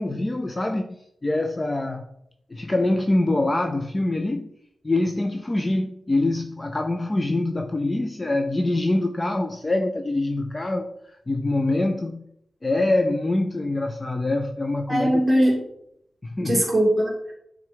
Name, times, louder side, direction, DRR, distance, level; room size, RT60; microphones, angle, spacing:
voice 1, 0.0-2.1 2.5-4.5 4.8-12.3 12.6-15.3 16.2-16.6, left 2 dB, 20° left, 0.4 m, -25 dB
voice 2, 14.9-15.6 16.4-17.3, equal, 10° right, 2.8 m, -20 dB
9.9 x 3.7 x 4.9 m
wide cardioid pair, 155°, 0 cm